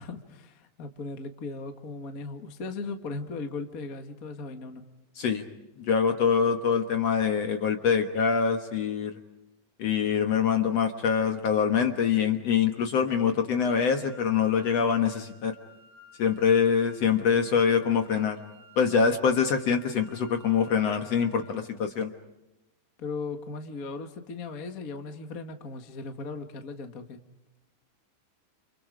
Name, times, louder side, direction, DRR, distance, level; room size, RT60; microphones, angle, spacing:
voice 1, 0.0-4.8 23.0-27.2, left 3 dB, 35° left, 6 dB, 1.4 m, -37 dB
voice 2, 5.8-9.2 9.8-15.5 16.2-18.4 18.8-22.1, left 6 dB, 55° left, 6 dB, 2.1 m, -24 dB
sound 1, 13.6-21.4, left 3 dB, 80° right, 7.2 m, -54 dB
30.0 x 28.5 x 5.0 m, 0.94 s
omnidirectional pair, 4.1 m